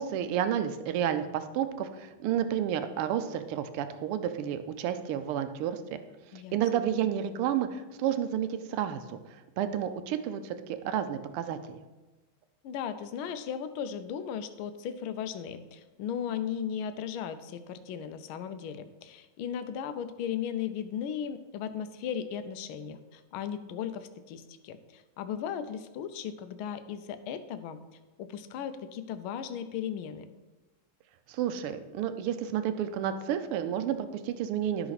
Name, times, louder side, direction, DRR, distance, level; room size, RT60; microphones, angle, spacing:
voice 1, 0.0-6.0 6.3-9.2 9.6-11.8 31.3-34.9, right 9 dB, 85° right, 10 dB, 1.6 m, -31 dB
voice 2, 6.3-6.8 12.6-27.8 28.2-30.2, left 8 dB, 75° left, 11 dB, 1.4 m, -36 dB
12.0 x 5.8 x 4.1 m, 1.2 s
omnidirectional pair, 2.4 m